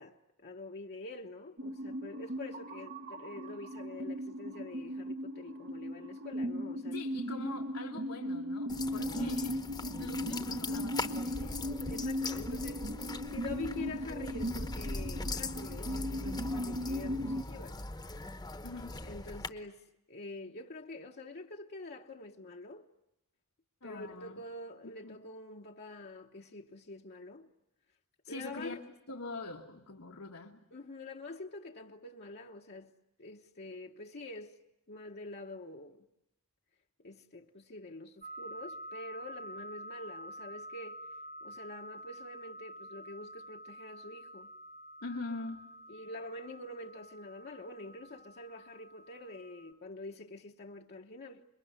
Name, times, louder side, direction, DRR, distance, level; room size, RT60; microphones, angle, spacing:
voice 1, 0.0-7.0 9.0-9.4 11.9-17.8 19.0-22.9 23.8-27.5 28.3-28.8 30.7-32.9 33.2-34.6 34.9-36.1 37.0-41.1 41.4-44.5 45.9-51.5, left 2 dB, 50° left, 1.0 m, -46 dB
sound 1, 1.6-17.4, equal, 50° right, 1.0 m, -38 dB
voice 2, 6.9-9.6 10.0-11.6 18.6-19.0 23.8-24.4 24.8-25.2 28.2-28.8 29.1-30.6 45.0-45.7, left 3 dB, 80° left, 1.5 m, -43 dB
sound 2, 8.7-19.5, left 2 dB, 20° left, 1.0 m, -40 dB
sound 3, 38.2-49.7, equal, 35° right, 1.5 m, -48 dB
27.0 x 22.5 x 9.5 m
head